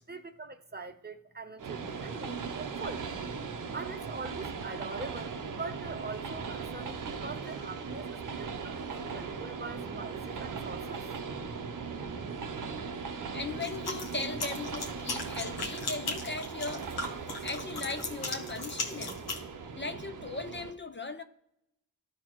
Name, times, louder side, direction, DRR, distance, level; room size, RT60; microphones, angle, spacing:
voice 1, 0.1-3.0 3.7-11.1, right 3 dB, 25° right, 0.7 m, -43 dB
Train, 1.6-20.7, right 5 dB, 55° right, 0.8 m, -39 dB
voice 2, 13.3-16.9 17.2-19.2 19.8-21.2, left 3 dB, 30° left, 0.6 m, -38 dB
sound 1, 13.6-19.4, left 3 dB, 90° left, 1.2 m, -37 dB
13.0 x 4.4 x 3.0 m
cardioid pair, 45°, 37 cm